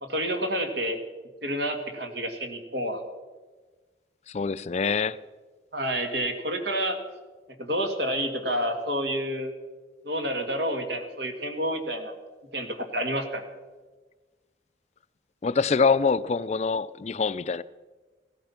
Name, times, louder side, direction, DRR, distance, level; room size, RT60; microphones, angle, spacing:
voice 1, 0.0-1.0 1.4-3.0 5.7-7.0 7.6-9.5 10.0-12.1 12.5-13.4, equal, 70° right, 2.4 m, -29 dB
voice 2, 4.3-5.2 15.4-17.6, left 5 dB, 40° left, 0.4 m, -25 dB
16.5 x 14.0 x 5.9 m
head